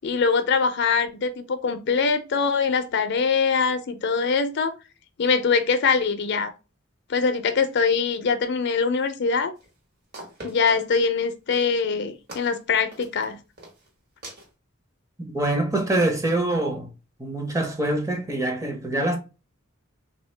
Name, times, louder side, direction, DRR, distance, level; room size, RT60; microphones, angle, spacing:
voice 1, 0.0-4.7 5.2-6.5 7.1-9.5 10.4-13.4, left 5 dB, 55° left, 0.5 m, -23 dB
sound 1, 9.6-9.7 10.1-11.1 11.5-11.8 12.3-12.6 12.9-13.2 13.6-13.9 14.2-14.5, right 1 dB, 50° right, 1.5 m, -41 dB
voice 2, 15.3-16.9 17.2-19.2, right 2 dB, 15° right, 0.7 m, -24 dB
3.6 x 2.7 x 3.2 m
head